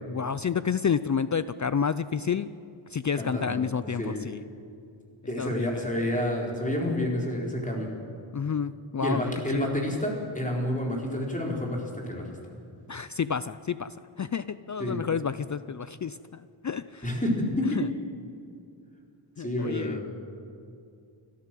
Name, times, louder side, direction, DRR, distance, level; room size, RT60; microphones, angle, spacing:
voice 1, 0.1-2.5 2.9-4.4 5.4-5.9 8.3-9.2 9.5-9.8 12.9-17.2 17.7-17.9 19.4-20.0, left 6 dB, 40° left, 14 dB, 0.4 m, -30 dB
voice 2, 3.2-3.6 4.0-4.2 5.3-7.9 9.0-12.3 14.8-15.0 17.0-17.7 19.4-20.0, left 1 dB, 15° left, -1 dB, 4.1 m, -29 dB
29.0 x 12.5 x 7.6 m, 2.5 s
wide cardioid pair, 110°, 50 cm